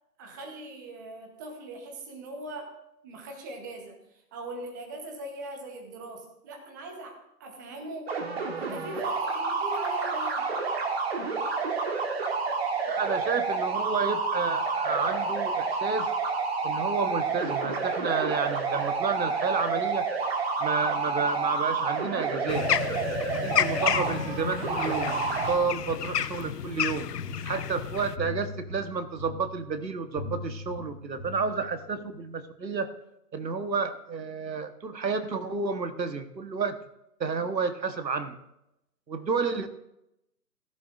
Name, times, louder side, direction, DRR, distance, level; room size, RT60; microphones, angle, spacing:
voice 1, 0.2-2.7 3.0-4.0 4.3-8.2 8.6-10.5, right 2 dB, 10° right, 3 dB, 0.9 m, -40 dB
sound 1, 8.1-25.6, right 4 dB, 40° right, 1.6 m, -29 dB
voice 2, 12.9-16.1 16.6-20.1 20.6-22.7 23.4-27.1 27.4-32.9 33.3-36.8 37.2-38.4 39.1-39.7, right 4 dB, 85° right, 9 dB, 1.3 m, -30 dB
sound 2, 22.5-28.2, left 9 dB, 70° left, 0.7 m, -31 dB
sound 3, 26.8-32.0, left 3 dB, 25° left, 3.0 m, -41 dB
17.0 x 11.0 x 2.5 m, 0.86 s
figure-of-eight pair, 150°, 49 cm